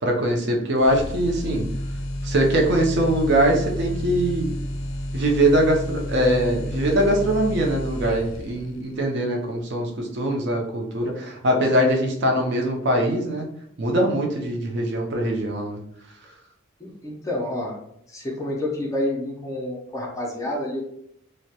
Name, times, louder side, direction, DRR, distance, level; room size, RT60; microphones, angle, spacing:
voice 1, 0.0-1.7 2.2-4.5 5.1-13.5 13.8-15.8, right 1 dB, 55° right, 1 dB, 0.5 m, -22 dB
sound 1, 0.8-8.8, left 1 dB, 80° left, 0.4 m, -30 dB
voice 2, 16.8-17.8 18.1-20.8, left 1 dB, 15° left, -2 dB, 0.4 m, -29 dB
2.2 x 2.0 x 2.7 m, 0.74 s
head